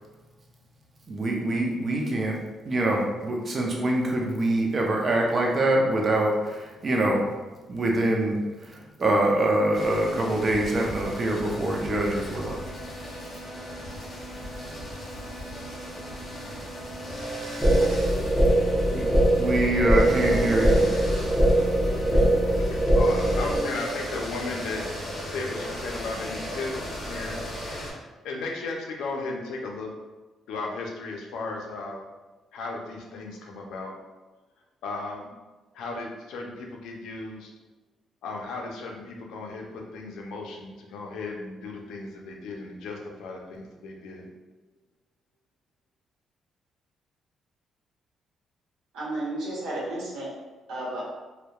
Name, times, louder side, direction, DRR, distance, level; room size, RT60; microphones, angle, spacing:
voice 1, 1.1-2.4 2.7-7.3 7.7-12.6 18.9-19.0 19.4-20.8, right 1 dB, 40° right, 0 dB, 0.5 m, -25 dB
sound 1, 9.7-27.9, equal, 30° left, 0.8 m, -36 dB
sound 2, 17.6-23.6, right 1 dB, 5° right, 0.7 m, -21 dB
voice 2, 22.9-24.8 25.2-27.4 27.7-29.9 30.5-32.0 32.5-33.9 34.8-35.3 35.7-37.5 38.2-44.3, left 3 dB, 85° left, 1 dB, 0.4 m, -35 dB
voice 3, 48.9-50.3 50.7-51.0, right 1 dB, 85° right, -6 dB, 0.9 m, -32 dB
2.7 x 2.1 x 2.3 m, 1.2 s
cardioid pair, 90°, 0 cm